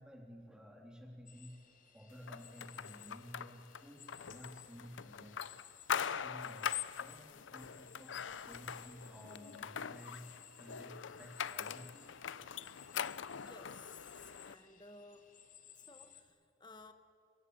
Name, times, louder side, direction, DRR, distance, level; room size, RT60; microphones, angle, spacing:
voice 1, 0.0-1.6 1.9-5.4 5.9-10.2 10.6-12.0, equal, 5° right, 1 dB, 3.3 m, -53 dB
sound 1, 1.3-16.2, left 8 dB, 45° left, 2.4 m, -60 dB
sound 2, 2.3-14.5, left 7 dB, 90° left, 0.6 m, -43 dB
voice 2, 13.4-15.3 15.9-16.9, left 3 dB, 25° left, 9 dB, 1.4 m, -56 dB
25.5 x 22.5 x 9.6 m, 2.5 s
head